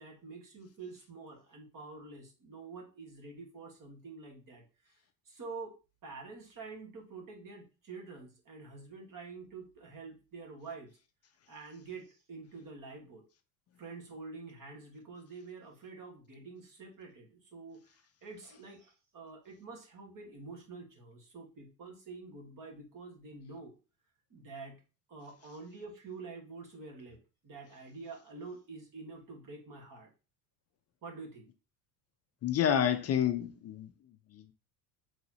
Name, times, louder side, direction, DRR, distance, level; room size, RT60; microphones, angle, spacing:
voice 1, 0.0-5.0 5.2-5.7 6.0-10.9 11.5-13.2 13.8-17.8 18.2-23.7 24.3-24.8 25.1-27.2 27.4-30.1 31.0-31.5, right 4 dB, 40° right, 1.6 m, -47 dB
voice 2, 32.4-33.9, left 9 dB, 35° left, 0.4 m, -28 dB
3.9 x 3.2 x 2.8 m
supercardioid pair, 90°, 48 cm